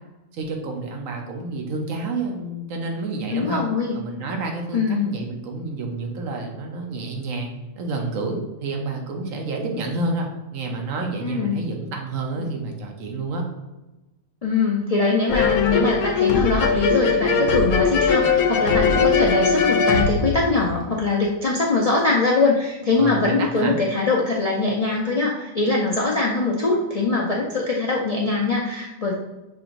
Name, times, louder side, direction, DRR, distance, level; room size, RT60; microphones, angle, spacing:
voice 1, 0.3-13.4 23.0-23.7, right 3 dB, 70° right, 1 dB, 1.2 m, -29 dB
voice 2, 3.3-4.0 4.7-5.1 11.2-11.6 14.4-29.1, left 3 dB, 60° left, -4 dB, 0.3 m, -22 dB
sound 1, 15.3-21.1, left 5 dB, 80° left, 1.0 m, -20 dB
6.5 x 2.9 x 2.5 m, 1.0 s
omnidirectional pair, 1.5 m